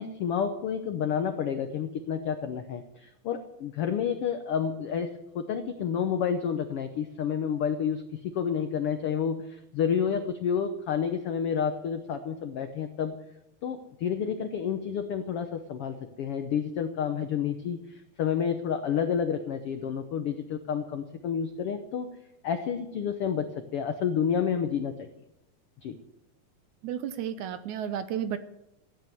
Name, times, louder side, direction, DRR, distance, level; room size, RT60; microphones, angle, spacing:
voice 1, 0.0-13.2 13.6-22.1 22.4-25.1 25.8-26.0, left 7 dB, 80° left, 7 dB, 1.2 m, -30 dB
voice 2, 26.8-28.4, right 9 dB, 75° right, 11 dB, 2.0 m, -32 dB
15.5 x 9.1 x 7.8 m, 0.86 s
omnidirectional pair, 3.8 m